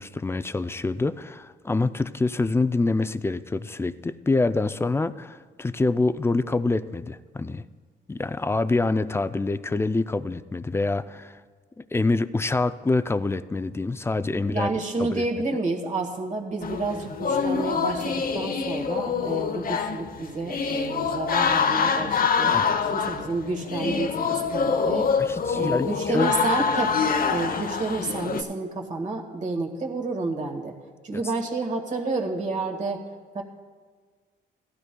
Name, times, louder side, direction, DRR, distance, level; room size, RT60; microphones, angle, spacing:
voice 1, 0.0-7.6 8.1-11.4 11.8-14.7 15.0-15.2 22.5-22.7 25.2-25.9 26.1-26.3 31.1-31.2, left 3 dB, 10° left, 13 dB, 0.4 m, -26 dB
voice 2, 14.3-22.6 22.8-25.1 25.5-27.0 27.3-30.7 31.0-33.0 33.3-33.4, right 3 dB, 40° right, 2 dB, 1.7 m, -30 dB
sound 1, 16.6-28.4, left 6 dB, 50° left, 0.7 m, -25 dB
17.0 x 12.5 x 2.3 m, 1.6 s
cardioid pair, 90°, 20 cm